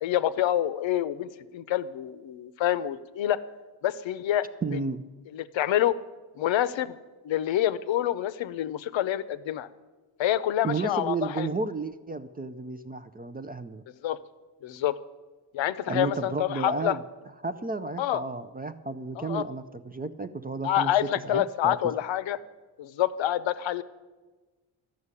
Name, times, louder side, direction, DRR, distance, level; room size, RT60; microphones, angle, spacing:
voice 1, 0.0-3.4 3.8-4.5 4.7-4.8 5.3-6.0 6.4-7.0 7.2-9.7 10.2-11.5 14.0-14.2 14.6-15.0 15.5-17.0 18.0-18.2 19.2-19.4 20.6-22.4 22.8-23.8, left 12 dB, 70° left, 15 dB, 0.7 m, -27 dB
voice 2, 4.6-5.0 10.6-13.8 15.9-17.0 17.4-21.9, right 4 dB, 20° right, 11 dB, 0.4 m, -32 dB
12.5 x 6.4 x 9.6 m, 1.3 s
cardioid pair, 115°, 48 cm